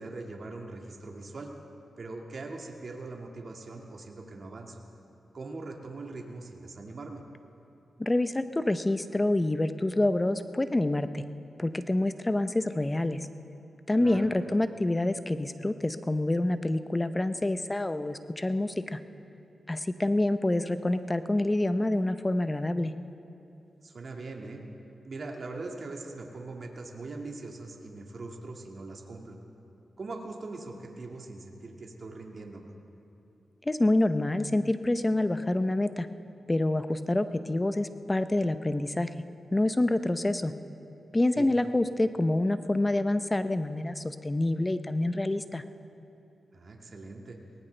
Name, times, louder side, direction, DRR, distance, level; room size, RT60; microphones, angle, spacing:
voice 1, 0.0-1.5 2.0-4.8 5.3-7.2 14.0-14.3 23.8-24.6 25.0-29.4 30.0-32.7 41.3-41.5 46.5-47.4, right 3 dB, 55° right, 1 dB, 1.9 m, -41 dB
voice 2, 8.0-11.2 11.6-13.3 13.9-19.0 19.7-22.9 33.6-36.1 36.5-39.1 39.5-40.5 41.1-45.6, left 1 dB, 20° left, 11 dB, 0.7 m, -27 dB
23.0 x 18.5 x 3.4 m, 2.9 s
cardioid pair, 65°, 0 cm